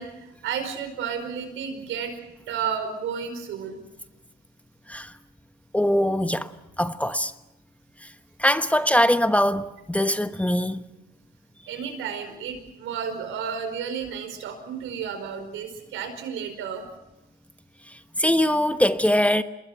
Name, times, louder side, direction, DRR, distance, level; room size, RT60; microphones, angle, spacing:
voice 1, 0.0-2.1 2.5-3.8 11.7-16.8, right 7 dB, 85° right, 5.0 m, -32 dB
voice 2, 5.7-6.5 6.8-7.3 8.0-8.1 8.4-10.8 17.8-19.4, left 1 dB, 5° left, 1.1 m, -22 dB
27.5 x 21.0 x 5.9 m
cardioid pair, 90°, 20 cm